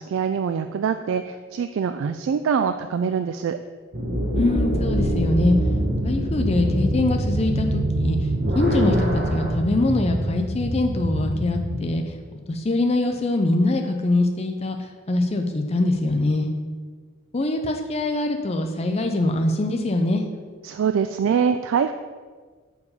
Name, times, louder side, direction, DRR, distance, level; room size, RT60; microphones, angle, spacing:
voice 1, 0.0-3.6 20.6-21.9, right 7 dB, 80° right, 9 dB, 0.3 m, -24 dB
sound 1, 3.9-9.5, right 1 dB, 50° right, 1.3 m, -25 dB
voice 2, 4.3-5.6 6.0-8.3 8.5-12.2 12.5-16.5 17.3-20.3, left 2 dB, 30° left, 5 dB, 0.5 m, -23 dB
sound 2, 4.9-11.8, equal, 30° right, 0.6 m, -27 dB
6.7 x 4.7 x 5.5 m, 1.5 s
head